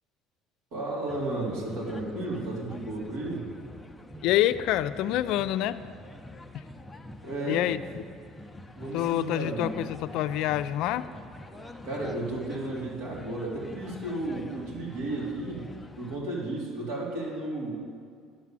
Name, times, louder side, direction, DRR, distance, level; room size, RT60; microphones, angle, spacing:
voice 1, 0.7-3.5 7.2-7.6 8.8-9.8 11.8-15.7 16.0-17.7, right 2 dB, 80° right, -5 dB, 3.5 m, -33 dB
sound 1, 1.1-16.2, left 1 dB, 10° left, 0.7 m, -46 dB
voice 2, 4.2-5.8 6.5-6.6 7.5-8.0 8.9-11.1, left 13 dB, 70° left, 13 dB, 0.4 m, -27 dB
10.0 x 7.2 x 7.5 m, 2.2 s
supercardioid pair, 105°, 0 cm